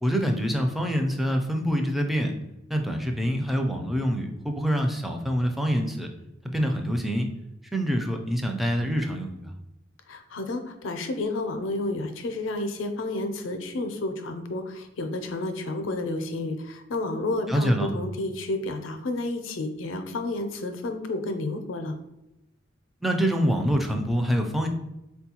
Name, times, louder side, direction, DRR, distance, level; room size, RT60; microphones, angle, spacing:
voice 1, 0.0-2.3 2.7-6.1 6.5-7.3 7.7-9.5 17.5-17.9 23.0-24.7, equal, ahead, 3 dB, 0.4 m, -25 dB
voice 2, 10.1-21.9, left 2 dB, 85° left, 7 dB, 0.5 m, -31 dB
4.2 x 2.3 x 2.8 m, 0.92 s
head